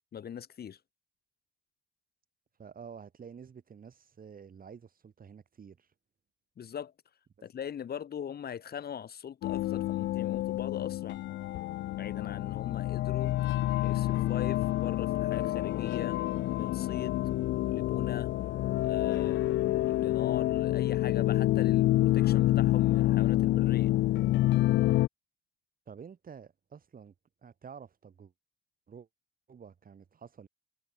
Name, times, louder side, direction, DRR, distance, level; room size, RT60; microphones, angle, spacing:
voice 1, 0.1-0.8 6.6-6.9 7.4-11.2 12.0-13.4 13.8-16.2 16.6-17.2 17.7-18.3 18.8-23.9, left 8 dB, 50° left, 1.6 m, -41 dB
voice 2, 2.6-5.9 7.4-7.5 25.9-27.1 27.4-28.3 28.9-29.1 29.5-30.5, right 6 dB, 45° right, 4.8 m, -49 dB
sound 1, 9.4-25.1, left 15 dB, 70° left, 0.4 m, -28 dB
cardioid pair, 90°, 20 cm